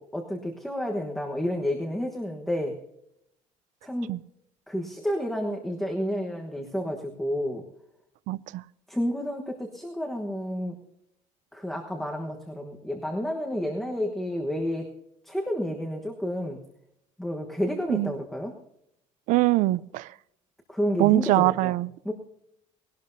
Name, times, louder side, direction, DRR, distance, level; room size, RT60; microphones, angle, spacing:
voice 1, 0.0-2.8 3.8-4.1 4.7-7.6 8.9-10.7 11.5-14.9 15.2-16.6 17.2-18.5 20.7-21.8 22.0-22.1, equal, ahead, 1 dB, 1.2 m, -30 dB
voice 2, 8.3-8.6 17.9-18.1 19.3-20.1 21.0-22.1, right 18 dB, 75° right, 19 dB, 0.5 m, -23 dB
19.5 x 17.5 x 2.7 m, 0.76 s
cardioid pair, 170°, 13 cm